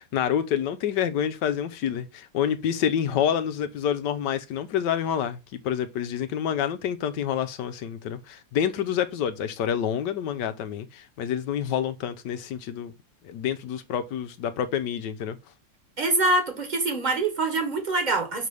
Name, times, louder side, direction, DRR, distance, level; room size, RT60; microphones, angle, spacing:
voice 1, 0.0-12.9 13.2-15.4, left 9 dB, 75° left, 1.2 m, -28 dB
voice 2, 16.0-18.5, right 2 dB, 25° right, 1.3 m, -24 dB
6.4 x 3.3 x 5.3 m
omnidirectional pair, 2.0 m